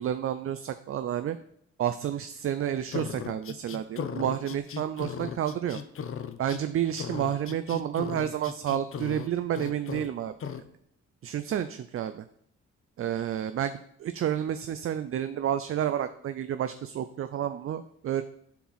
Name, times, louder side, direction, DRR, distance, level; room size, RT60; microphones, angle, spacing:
voice 1, 0.0-1.4 1.8-5.8 6.4-10.3 11.2-12.2 13.0-13.7 14.0-18.2, right 10 dB, 45° right, 10 dB, 0.5 m, -30 dB
sound 1, 2.9-6.6 7.0-9.3 9.5-10.1 10.4-10.6, left 7 dB, 45° left, 0.8 m, -36 dB
7.2 x 4.6 x 5.6 m, 0.69 s
cardioid pair, 90°, 30 cm